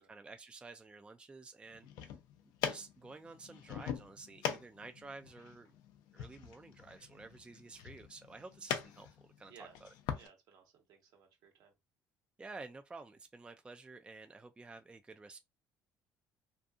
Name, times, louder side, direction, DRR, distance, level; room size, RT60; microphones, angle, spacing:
voice 1, 0.0-2.1 2.6-5.8 6.1-9.1 9.4-9.9 12.4-15.4, right 3 dB, 15° right, 0.3 m, -51 dB
sound 1, 1.7-10.3, left 8 dB, 80° left, 0.5 m, -43 dB
voice 2, 10.1-11.7, right 7 dB, 70° right, 1.1 m, -59 dB
2.6 x 2.6 x 2.4 m
supercardioid pair, 85°, 7 cm